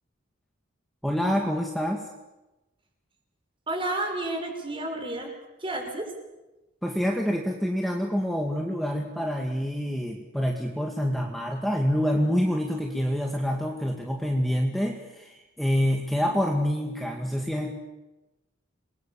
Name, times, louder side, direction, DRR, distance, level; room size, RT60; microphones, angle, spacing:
voice 1, 1.0-2.1 6.8-17.7, equal, ahead, 1 dB, 2.1 m, -27 dB
voice 2, 3.7-6.1, right 2 dB, 25° right, 3 dB, 5.5 m, -31 dB
28.5 x 22.0 x 7.2 m, 1.0 s
head